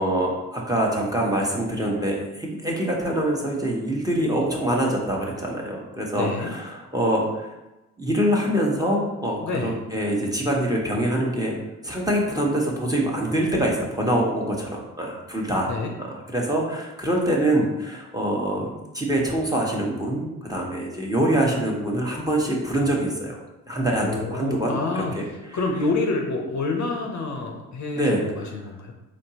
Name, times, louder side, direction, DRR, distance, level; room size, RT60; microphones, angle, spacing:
voice 1, 0.0-7.5 8.0-11.6 11.8-15.7 16.0-18.7 18.9-23.4 23.7-25.2 27.9-28.5, right 1 dB, 10° right, -2 dB, 1.2 m, -24 dB
voice 2, 6.1-6.5 9.4-9.8 15.7-15.9 24.0-25.3 25.5-28.9, left 3 dB, 50° left, 1 dB, 0.8 m, -28 dB
4.2 x 2.9 x 2.9 m, 1.0 s
hypercardioid pair, 40°, 38 cm